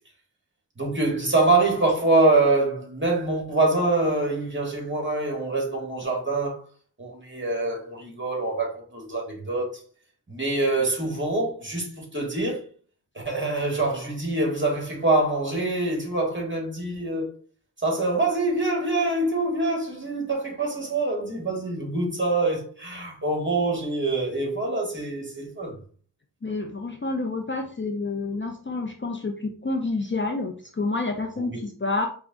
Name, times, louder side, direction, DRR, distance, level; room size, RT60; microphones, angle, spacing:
voice 1, 0.8-6.6 7.0-9.8 10.3-12.6 13.2-17.3 17.8-25.8 31.4-31.6, right 2 dB, 30° right, 1.9 m, -25 dB
voice 2, 26.4-32.1, left 3 dB, 30° left, 0.7 m, -29 dB
4.6 x 2.3 x 3.9 m
cardioid pair, 55°, 39 cm